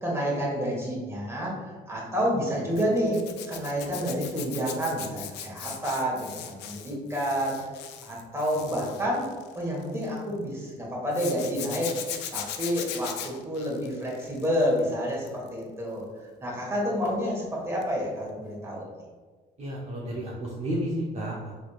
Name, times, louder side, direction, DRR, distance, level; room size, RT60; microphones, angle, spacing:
voice 1, 0.0-3.2 3.5-7.6 8.0-9.3 9.5-11.9 12.3-16.0 16.4-18.9, equal, 15° right, -4 dB, 1.5 m, -29 dB
Zipper (clothing), 2.8-10.2 11.1-14.8 15.1-15.5 17.8-18.0 18.2-18.3, left 9 dB, 85° left, 0.4 m, -39 dB
voice 2, 19.6-21.6, right 1 dB, 40° right, -6 dB, 0.9 m, -32 dB
4.0 x 3.2 x 2.4 m, 1.4 s
cardioid pair, 80°, 17 cm